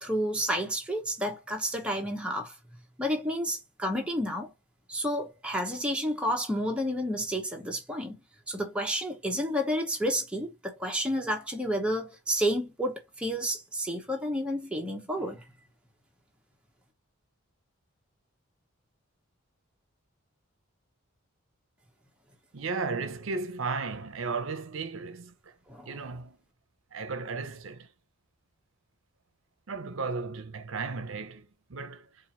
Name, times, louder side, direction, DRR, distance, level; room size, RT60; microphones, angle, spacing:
voice 1, 0.0-2.5 3.0-4.5 4.9-8.1 8.5-15.4 25.7-26.0, equal, 5° right, 0.8 m, -30 dB
voice 2, 22.5-25.3 25.9-26.4 26.9-27.9 29.7-32.1, right 4 dB, 65° right, 0.6 m, -35 dB
4.5 x 2.5 x 2.8 m
head